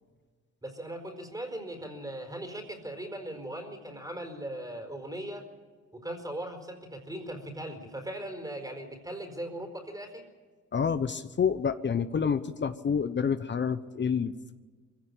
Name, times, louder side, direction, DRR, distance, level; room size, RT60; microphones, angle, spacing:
voice 1, 0.6-5.5 5.9-10.3, right 1 dB, 10° right, 5 dB, 4.6 m, -39 dB
voice 2, 10.7-14.5, left 6 dB, 40° left, 12 dB, 0.9 m, -28 dB
22.5 x 16.5 x 8.6 m, 1.5 s
cardioid pair, 90°, 30 cm